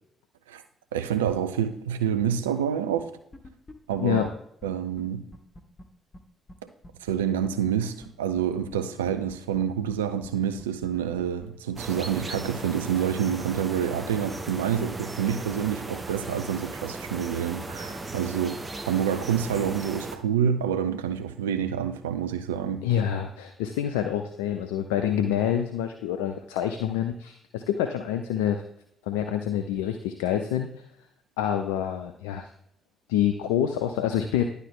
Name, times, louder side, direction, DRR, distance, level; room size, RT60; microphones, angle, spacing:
voice 1, 0.9-3.1 3.9-4.3 4.6-5.2 7.0-18.6 18.9-22.8, right 8 dB, 75° right, 10 dB, 0.4 m, -27 dB
sound 1, 3.3-4.0 4.3-4.4 4.6-4.7 5.0-5.1 5.3-5.8 6.1-6.2 6.5-6.6 6.8-7.7 8.0-8.1 8.4-8.5 8.7-8.8 9.1-9.6 9.9-10.0 10.2-10.3 10.6-11.5 11.8-11.9 12.1-12.2 12.5-12.6, left 1 dB, 25° left, 1.0 m, -45 dB
sound 2, 11.8-20.2, right 2 dB, 30° right, 0.8 m, -37 dB
voice 2, 22.8-28.6 29.1-30.7 31.4-32.5 33.1-34.4, left 10 dB, 70° left, 6 dB, 0.4 m, -27 dB
10.5 x 4.0 x 3.6 m, 0.71 s
figure-of-eight pair, 40°, 0 cm